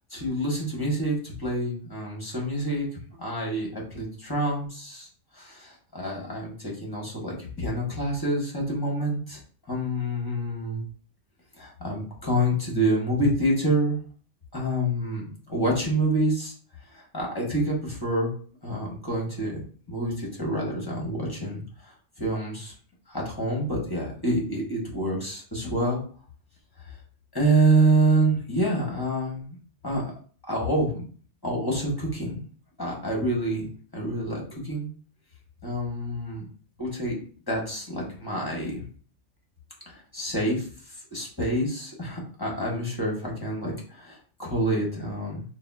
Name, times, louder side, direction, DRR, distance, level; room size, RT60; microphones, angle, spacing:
voice 1, 0.1-2.9 3.2-5.1 5.3-9.4 9.7-10.8 11.6-14.0 14.5-16.5 16.9-18.3 18.6-19.6 19.9-22.7 23.1-26.0 27.3-29.5 29.8-30.0 30.5-31.0 31.4-32.4 32.8-33.7 33.9-34.9 35.6-36.4 36.8-37.2 37.5-38.8 39.9-40.7 41.1-45.4, right 1 dB, 20° left, -2 dB, 1.4 m, -27 dB
6.8 x 2.4 x 2.7 m, 0.43 s
omnidirectional pair, 1.3 m